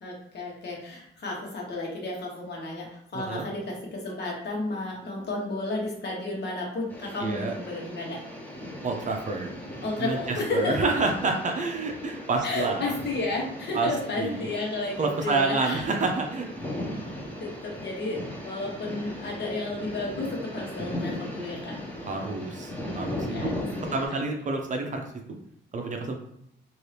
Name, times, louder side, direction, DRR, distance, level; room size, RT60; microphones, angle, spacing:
voice 1, 0.0-8.2 9.8-10.8 12.4-15.8 17.4-21.7 23.3-24.2, left 2 dB, 60° left, -1 dB, 1.2 m, -32 dB
voice 2, 3.1-3.5 7.2-7.5 8.8-9.5 10.0-10.2 10.5-12.8 13.7-13.9 14.2-14.5 15.0-16.5 22.1-23.5 23.9-25.0 25.7-26.2, right 3 dB, 40° right, 3 dB, 0.6 m, -28 dB
sound 1, 6.9-24.1, left 1 dB, 10° left, 1.0 m, -38 dB
2.7 x 2.6 x 3.3 m, 0.74 s
cardioid pair, 90°, 20 cm